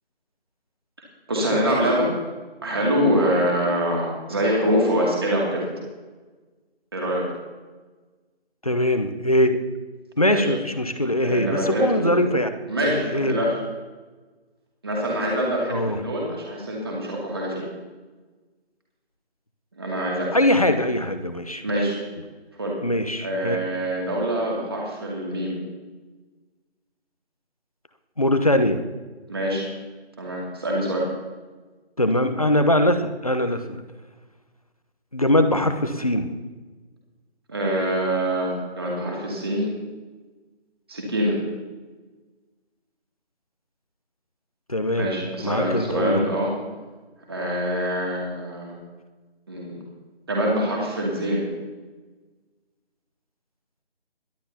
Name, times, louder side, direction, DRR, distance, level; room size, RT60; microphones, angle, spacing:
voice 1, 1.3-2.1 2.6-5.7 6.9-7.3 10.3-10.5 11.2-12.3 12.7-13.6 14.8-17.6 19.7-20.4 21.6-22.0 22.6-22.8 23.2-25.6 29.3-29.6 30.2-31.1 37.5-39.7 40.9-41.4 45.0-46.5 47.3-48.8 49.5-49.8 50.3-51.5, equal, 20° right, -3 dB, 2.4 m, -24 dB
voice 2, 8.6-9.6 10.2-12.5 13.1-13.4 15.7-16.0 20.3-21.6 22.8-23.6 28.2-28.8 32.0-33.8 35.1-36.3 44.7-45.1 45.4-46.2, left 1 dB, 35° left, 8 dB, 0.8 m, -21 dB
22.0 x 11.5 x 2.8 m, 1.3 s
figure-of-eight pair, 175°, 33 cm